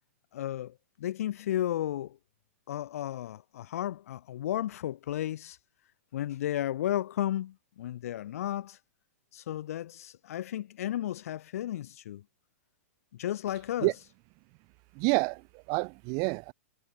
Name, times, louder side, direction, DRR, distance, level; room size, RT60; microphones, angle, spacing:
voice 1, 0.3-2.2 2.7-5.6 6.1-8.8 9.3-12.2 13.2-13.9, left 12 dB, 70° left, 1.2 m, -33 dB
voice 2, 14.9-16.5, right 36 dB, 40° right, 1.0 m, -28 dB
hypercardioid pair, 140°, 8 cm